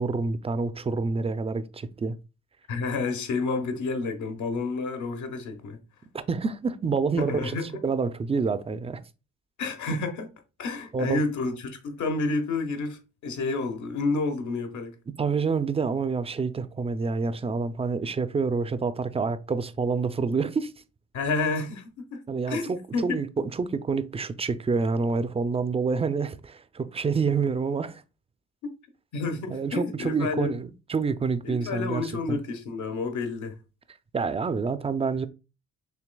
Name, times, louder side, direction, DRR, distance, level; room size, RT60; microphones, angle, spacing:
voice 1, 0.0-2.2 6.1-7.6 7.8-9.0 10.9-11.2 15.2-20.7 22.3-28.0 29.5-32.4 34.1-35.3, right 4 dB, 20° right, 0.4 m, -27 dB
voice 2, 2.7-5.8 7.2-7.8 9.6-10.3 10.6-14.9 21.1-23.2 28.6-28.7 29.1-30.5 31.4-33.6, left 3 dB, 75° left, 1.2 m, -30 dB
6.0 x 3.2 x 2.3 m
cardioid pair, 90°, 30 cm